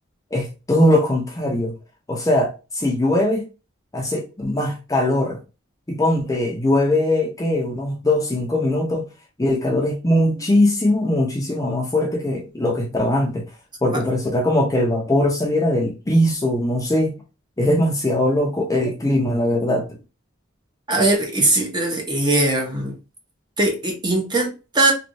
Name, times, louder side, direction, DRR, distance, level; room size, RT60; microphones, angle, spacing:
voice 1, 0.3-1.7 2.1-3.4 3.9-5.4 5.9-9.1 9.4-13.4 13.8-17.2 17.6-20.0, left 1 dB, 15° left, 0.6 m, -20 dB
voice 2, 20.9-22.9 23.6-24.9, right 2 dB, 25° right, 0.8 m, -20 dB
3.2 x 2.4 x 2.6 m
head